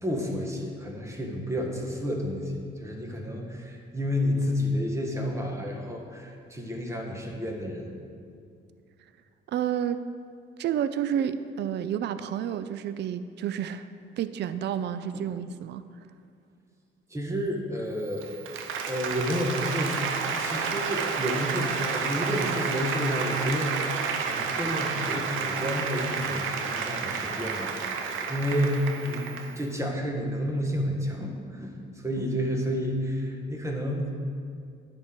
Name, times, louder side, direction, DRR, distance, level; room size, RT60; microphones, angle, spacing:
voice 1, 0.0-7.8 15.1-15.2 17.1-18.3 18.9-24.0 24.3-34.1, equal, 15° right, 1 dB, 1.6 m, -30 dB
voice 2, 9.5-10.0 10.6-13.9 14.2-15.8, right 9 dB, 60° right, 12 dB, 0.4 m, -30 dB
Applause, 18.1-29.6, right 5 dB, 90° right, 0.8 m, -30 dB
10.5 x 4.3 x 7.7 m, 2.3 s
cardioid pair, 90°, 20 cm